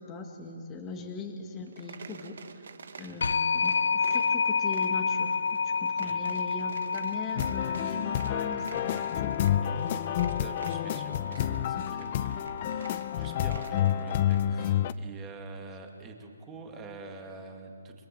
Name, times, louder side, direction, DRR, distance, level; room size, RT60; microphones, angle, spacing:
voice 1, 0.0-2.6 3.0-9.4, left 3 dB, 10° left, 1 dB, 1.7 m, -40 dB
sound 1, 1.6-14.9, right 5 dB, 55° right, 1.4 m, -49 dB
sound 2, 3.2-13.8, left 5 dB, 70° left, 0.8 m, -31 dB
sound 3, 7.4-14.9, left 11 dB, 25° left, 0.6 m, -29 dB
voice 2, 10.4-18.1, right 3 dB, 10° right, 3 dB, 2.2 m, -46 dB
28.5 x 22.0 x 7.8 m, 2.3 s
hypercardioid pair, 170°, 0 cm